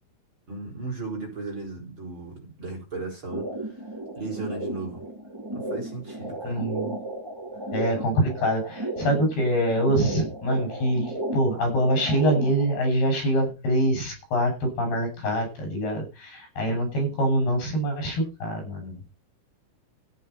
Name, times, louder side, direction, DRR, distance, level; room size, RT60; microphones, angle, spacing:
voice 1, 0.5-3.8 4.2-5.0 5.5-6.6, right 3 dB, 30° right, 0 dB, 5.1 m, -36 dB
sound 1, 3.3-12.8, right 1 dB, 5° right, 2.8 m, -34 dB
voice 2, 6.4-6.9 7.7-11.1 11.3-18.9, equal, 80° left, 3 dB, 9.4 m, -25 dB
13.5 x 10.0 x 5.7 m, 0.31 s
omnidirectional pair, 4.5 m